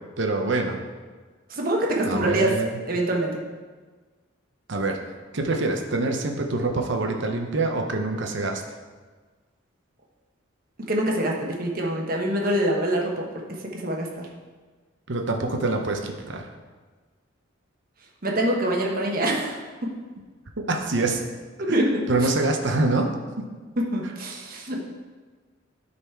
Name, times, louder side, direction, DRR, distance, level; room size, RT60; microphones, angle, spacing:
voice 1, 0.2-0.8 2.0-2.7 4.7-5.0 5.3-8.6 15.1-16.5 20.6-21.2 21.7-23.1 23.4-23.5, right 2 dB, 60° right, 3 dB, 0.7 m, -25 dB
voice 2, 1.5-2.6 2.9-3.4 10.9-13.3 13.6-14.3 18.2-19.9 21.6-22.3 23.8-24.9, right 1 dB, 45° right, -1 dB, 1.1 m, -25 dB
10.0 x 4.1 x 4.5 m, 1.4 s
head